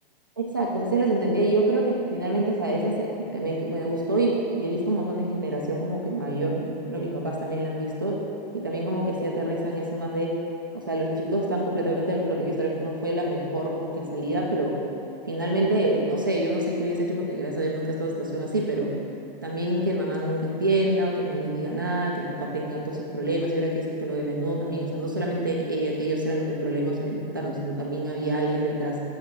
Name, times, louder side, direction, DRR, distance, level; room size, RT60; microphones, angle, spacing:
voice 1, 0.4-8.2 8.5-10.4 10.7-14.8 15.3-18.9 19.4-29.0, right 1 dB, 25° right, -3 dB, 0.3 m, -26 dB
7.3 x 4.5 x 5.2 m, 2.6 s
hypercardioid pair, 180°, 29 cm